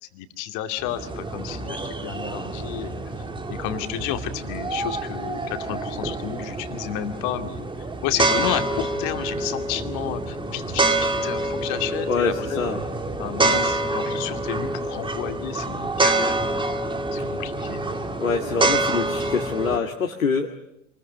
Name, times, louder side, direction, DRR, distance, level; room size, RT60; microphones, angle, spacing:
voice 1, 0.1-7.7 8.0-12.6 13.2-16.7 17.1-17.9, left 11 dB, 45° left, 7 dB, 2.4 m, -31 dB
sound 1, 0.8-19.8, right 2 dB, 10° right, 2.2 m, -27 dB
voice 2, 12.1-12.8 18.2-20.6, left 5 dB, 80° left, 3 dB, 1.9 m, -25 dB
27.0 x 21.0 x 9.5 m, 0.80 s
figure-of-eight pair, 80°, 41 cm